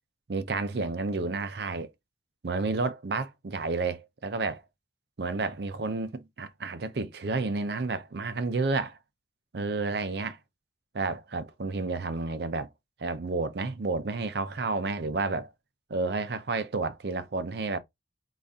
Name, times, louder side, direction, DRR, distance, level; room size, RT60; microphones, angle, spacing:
voice 1, 0.3-1.9 2.4-4.6 5.2-9.0 9.5-10.4 10.9-12.7 13.0-15.5 15.9-17.8, right 3 dB, 65° right, 0.6 m, -31 dB
4.0 x 2.5 x 3.4 m
head